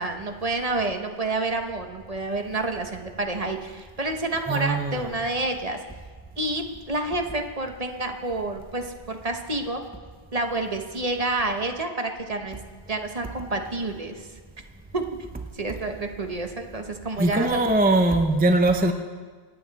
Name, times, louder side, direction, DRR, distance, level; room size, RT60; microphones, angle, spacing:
voice 1, 0.0-5.8 6.4-9.8 10.3-12.6 12.9-14.3 14.9-15.0 15.5-17.6, right 2 dB, 35° right, 5 dB, 1.1 m, -29 dB
voice 2, 4.3-5.2 15.7-15.8 17.2-18.9, right 2 dB, 10° right, 5 dB, 0.5 m, -21 dB
26.0 x 8.9 x 4.1 m, 1.5 s
omnidirectional pair, 1.2 m